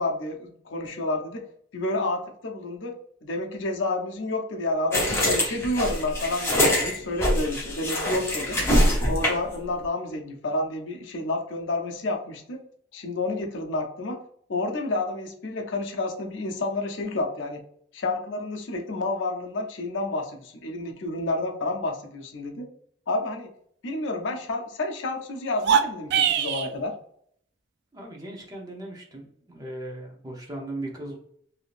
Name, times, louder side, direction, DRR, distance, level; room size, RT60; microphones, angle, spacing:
voice 1, 0.0-1.4 1.7-2.9 3.2-8.6 9.1-12.6 12.9-14.2 14.5-17.6 17.9-22.7 23.1-23.5 23.8-26.9, left 2 dB, 65° left, 3 dB, 0.6 m, -30 dB
sound 1, 4.9-9.5, left 1 dB, 15° left, 0.8 m, -24 dB
sound 2, 25.5-26.7, right 8 dB, 60° right, 0.3 m, -22 dB
voice 2, 27.9-31.2, right 1 dB, 20° right, 0 dB, 0.7 m, -38 dB
3.4 x 2.7 x 2.4 m, 0.65 s
head